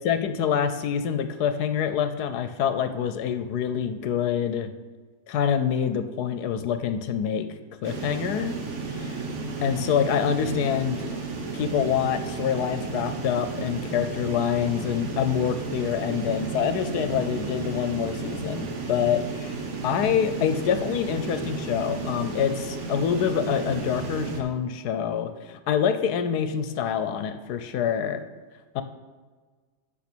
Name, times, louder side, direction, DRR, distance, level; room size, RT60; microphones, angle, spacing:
voice 1, 0.0-4.7 5.3-7.5 7.8-8.5 9.6-11.1 11.5-19.6 19.8-28.2 28.7-28.8, left 8 dB, 85° left, 10 dB, 1.2 m, -26 dB
sound 1, 7.8-24.4, right 4 dB, 50° right, 1.3 m, -33 dB
8.5 x 5.8 x 6.1 m, 1.5 s
omnidirectional pair, 1.7 m